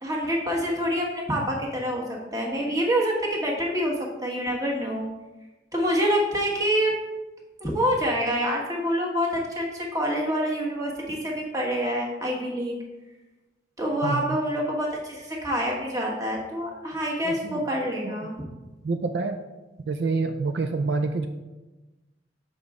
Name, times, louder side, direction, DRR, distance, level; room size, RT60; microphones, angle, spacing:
voice 1, 0.0-2.0 2.3-3.9 4.2-5.1 5.7-6.9 7.6-12.8 13.8-18.3, equal, 20° right, -1 dB, 1.3 m, -26 dB
voice 2, 14.0-14.4 17.3-17.6 18.0-18.3 18.8-19.4 19.9-21.3, right 3 dB, 65° right, 6 dB, 0.4 m, -27 dB
7.0 x 5.2 x 3.6 m, 1.1 s
head